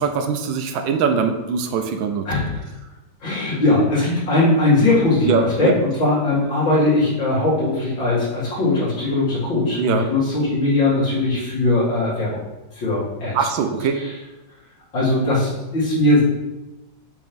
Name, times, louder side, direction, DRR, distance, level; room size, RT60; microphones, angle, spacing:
voice 1, 0.0-2.2 5.3-5.7 9.8-10.0 13.3-14.0, right 6 dB, 85° right, 6 dB, 1.4 m, -21 dB
voice 2, 2.2-2.6 3.2-12.4 12.7-13.5 13.9-14.2 14.9-16.2, left 2 dB, 75° left, -11 dB, 3.1 m, -20 dB
6.8 x 3.1 x 5.2 m, 1.0 s
omnidirectional pair, 2.1 m